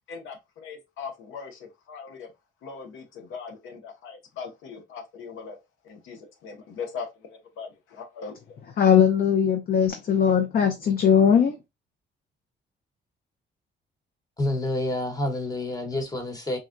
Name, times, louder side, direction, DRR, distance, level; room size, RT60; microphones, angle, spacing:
voice 1, 0.1-2.3 2.6-5.6 5.8-8.6, left 5 dB, 90° left, 0.7 m, -40 dB
voice 2, 8.8-11.5, left 8 dB, 50° left, 0.5 m, -20 dB
voice 3, 14.4-16.6, left 1 dB, 20° left, 1.0 m, -28 dB
3.8 x 2.1 x 2.5 m
cardioid pair, 90°, 20 cm